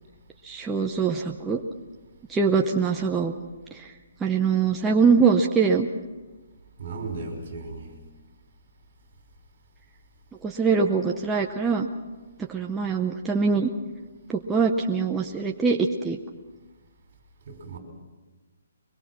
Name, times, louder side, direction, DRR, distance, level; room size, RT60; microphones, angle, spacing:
voice 1, 0.4-1.6 2.3-3.3 3.7-3.9 4.2-5.9 10.4-11.9 12.5-13.7 14.3-16.2, right 5 dB, 5° right, 0 dB, 0.6 m, -23 dB
voice 2, 6.8-8.0 17.5-17.8, right 3 dB, 40° right, 4 dB, 5.7 m, -35 dB
24.0 x 22.0 x 6.0 m, 1.3 s
hypercardioid pair, 180°, 0 cm